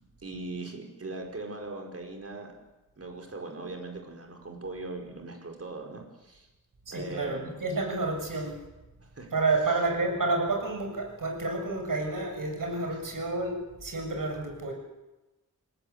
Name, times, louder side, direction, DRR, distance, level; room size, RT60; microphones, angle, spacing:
voice 1, 0.2-2.5 3.0-6.5 6.9-7.5 8.3-8.4 9.1-9.3 12.9-13.0, right 2 dB, 45° right, 2 dB, 5.0 m, -39 dB
voice 2, 6.9-8.6 9.3-14.7, right 3 dB, 70° right, 3 dB, 7.0 m, -30 dB
28.5 x 19.5 x 8.3 m, 1.1 s
wide cardioid pair, 120°, 34 cm